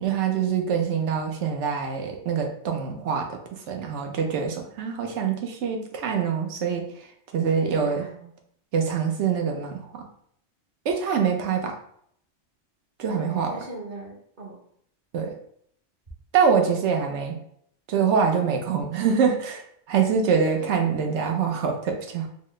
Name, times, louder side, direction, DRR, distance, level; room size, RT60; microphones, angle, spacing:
voice 1, 0.0-3.4 3.7-6.9 7.3-8.0 8.7-10.0 10.8-11.7 13.0-13.5 15.1-15.3 16.3-17.4 17.9-19.6 19.9-22.3, right 6 dB, 75° right, 3 dB, 1.0 m, -24 dB
voice 2, 7.7-8.3 13.1-14.6 19.9-20.0 20.6-20.9, right 2 dB, 45° right, -3 dB, 1.1 m, -41 dB
4.2 x 2.0 x 3.1 m, 0.67 s
omnidirectional pair, 1.2 m